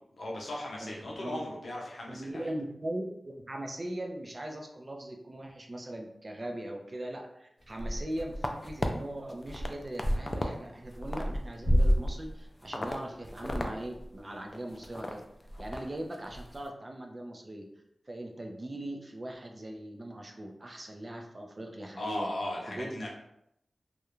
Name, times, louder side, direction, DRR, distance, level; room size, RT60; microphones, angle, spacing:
voice 1, 0.2-2.5 14.2-14.4 22.0-23.1, left 1 dB, 75° left, -2 dB, 0.6 m, -37 dB
voice 2, 0.8-1.4 2.1-15.2 15.6-17.7 18.1-22.3 22.7-23.1, right 1 dB, 35° right, 2 dB, 0.4 m, -40 dB
sound 1, 7.7-8.9 9.3-10.5 10.8-12.3 12.7-13.0 13.3-13.7 14.0-14.1 14.5-15.1 15.5-15.8 16.1-16.4, equal, 35° left, 0.3 m, -29 dB
2.4 x 2.1 x 3.0 m, 0.79 s
wide cardioid pair, 80°, 0 cm